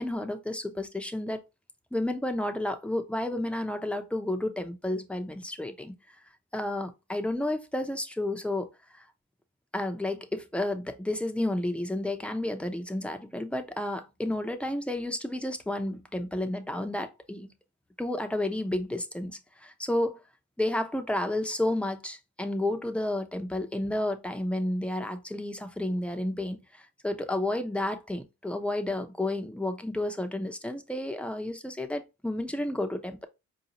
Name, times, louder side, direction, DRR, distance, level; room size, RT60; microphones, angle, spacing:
voice 1, 0.0-1.4 1.9-5.9 6.5-9.0 9.7-17.5 18.0-20.2 20.6-33.3, left 1 dB, 5° left, 0.7 m, -31 dB
4.7 x 2.7 x 2.9 m
cardioid pair, 90°, 30 cm